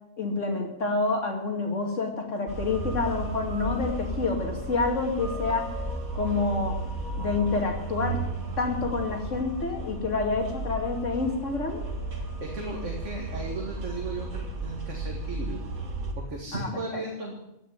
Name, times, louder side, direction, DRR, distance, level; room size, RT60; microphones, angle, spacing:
voice 1, 0.2-5.7 6.1-6.8 7.2-8.2 8.6-11.8 16.5-17.0, left 3 dB, 55° left, 3 dB, 2.7 m, -28 dB
sound 1, 2.5-16.1, right 2 dB, 70° right, 2.6 m, -34 dB
voice 2, 12.4-15.7 16.1-17.4, right 3 dB, 55° right, 1 dB, 2.3 m, -36 dB
16.5 x 6.8 x 9.8 m, 0.85 s
omnidirectional pair, 1.5 m